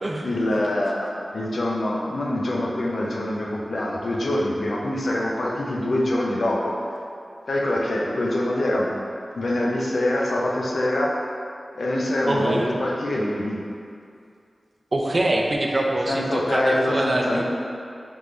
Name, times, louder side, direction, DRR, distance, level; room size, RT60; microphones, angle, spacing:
voice 1, 0.2-6.8 7.5-8.9 9.4-11.2 11.7-13.6 16.1-17.4, left 1 dB, 70° left, -2 dB, 0.6 m, -24 dB
voice 2, 12.3-12.7 14.9-17.4, right 1 dB, 40° right, 0 dB, 0.4 m, -24 dB
3.9 x 3.6 x 3.2 m, 2.4 s
wide cardioid pair, 100°, 0 cm